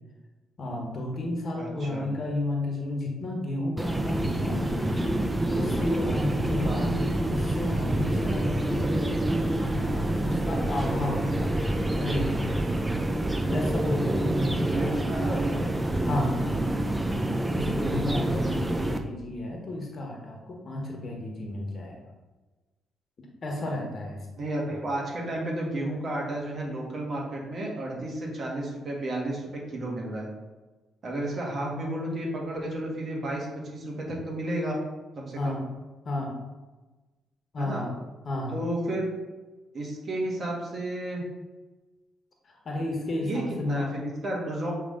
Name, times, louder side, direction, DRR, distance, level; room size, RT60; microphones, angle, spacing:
voice 1, 0.6-5.1 5.5-9.2 9.7-11.6 12.0-12.5 13.5-15.4 16.0-16.4 17.5-22.0 23.2-24.5 35.3-35.6 36.0-36.3 37.5-37.9 38.2-38.6 42.4-43.9, left 1 dB, 45° left, 0 dB, 1.5 m, -32 dB
voice 2, 1.6-2.1 6.6-6.9 14.7-15.6 24.4-30.3 31.0-34.8 35.2-35.6 37.6-37.8 38.5-39.1 39.7-41.2 43.2-44.7, right 1 dB, 50° right, -2 dB, 1.8 m, -32 dB
sound 1, 3.8-19.0, right 1 dB, 15° right, 0.5 m, -27 dB
7.4 x 3.5 x 3.9 m, 1.2 s
cardioid pair, 90°, 0 cm